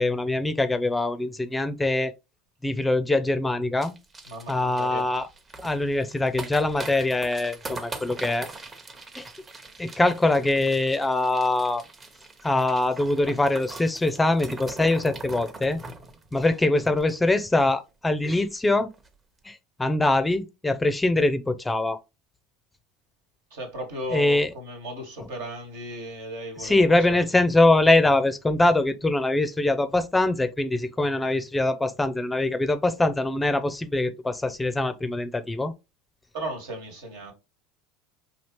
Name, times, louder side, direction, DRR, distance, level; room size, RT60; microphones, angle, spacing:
voice 1, 0.0-2.1 2.6-3.9 4.5-5.3 5.6-8.5 9.2-9.3 9.8-11.8 12.4-15.8 16.3-18.9 19.4-22.0 24.1-24.5 26.6-35.7, left 2 dB, 10° left, 0.5 m, -23 dB
sound 1, 3.8-17.6 17.9-18.0 18.2-18.6 18.9-19.1, right 2 dB, 25° right, 0.9 m, -42 dB
voice 2, 4.3-5.0 23.5-27.2 36.3-37.3, right 1 dB, 70° right, 1.6 m, -36 dB
4.2 x 2.8 x 3.0 m
hypercardioid pair, 75°, 0 cm